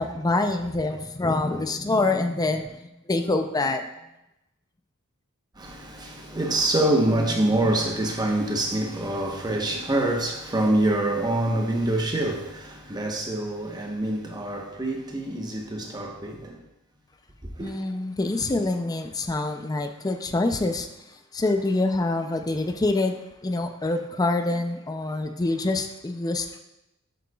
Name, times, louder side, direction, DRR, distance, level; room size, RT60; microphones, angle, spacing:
voice 1, 0.0-2.8 3.1-3.9 17.6-20.9 21.3-23.2 23.4-26.6, left 2 dB, 20° left, 0.4 m, -25 dB
voice 2, 5.6-16.6 17.6-17.7, right 1 dB, 20° right, 1.0 m, -25 dB
7.9 x 7.7 x 2.3 m
head